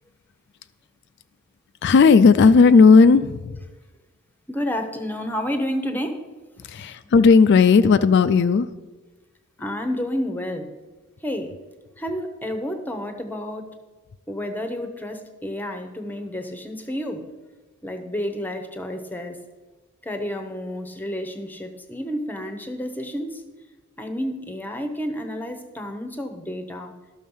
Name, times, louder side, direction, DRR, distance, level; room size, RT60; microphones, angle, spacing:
voice 1, 1.8-3.5 6.7-8.7, left 5 dB, 50° left, 12 dB, 0.3 m, -14 dB
voice 2, 4.5-6.2 6.7-6.9 9.6-10.7 11.2-11.5 12.0-13.7 14.3-17.2 17.8-19.4 20.0-23.4 24.0-26.9, equal, 10° left, 6 dB, 0.8 m, -30 dB
12.0 x 6.3 x 5.4 m, 1.2 s
head